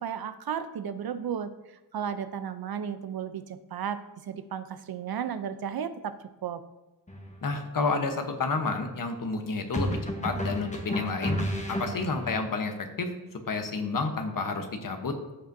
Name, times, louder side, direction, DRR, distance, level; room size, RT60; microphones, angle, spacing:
voice 1, 0.0-6.2 6.4-6.6, right 8 dB, 80° right, 12 dB, 0.6 m, -34 dB
sound 1, 7.1-7.3 9.7-12.4, equal, 20° left, 1.1 m, -32 dB
voice 2, 7.4-11.4 11.7-15.2, left 3 dB, 65° left, 6 dB, 1.1 m, -30 dB
14.5 x 5.1 x 2.7 m, 1.1 s
wide cardioid pair, 105°, 36 cm